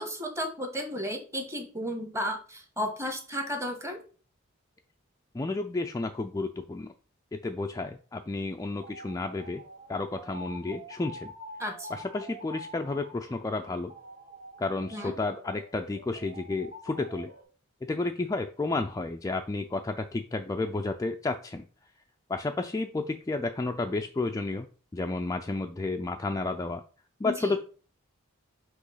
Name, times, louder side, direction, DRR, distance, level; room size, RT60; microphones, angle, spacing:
voice 1, 0.0-4.0 11.6-11.9 14.9-15.1 27.2-27.6, equal, 15° right, 5 dB, 1.1 m, -33 dB
voice 2, 5.3-6.9 7.3-9.6 9.9-11.3 11.9-13.9 14.6-17.3 17.9-21.6 22.3-24.7 24.9-26.8 27.2-27.6, left 3 dB, 15° left, 5 dB, 0.3 m, -31 dB
sound 1, 8.8-17.4, right 1 dB, 45° right, 1.2 m, -46 dB
6.1 x 3.0 x 5.5 m, 0.39 s
head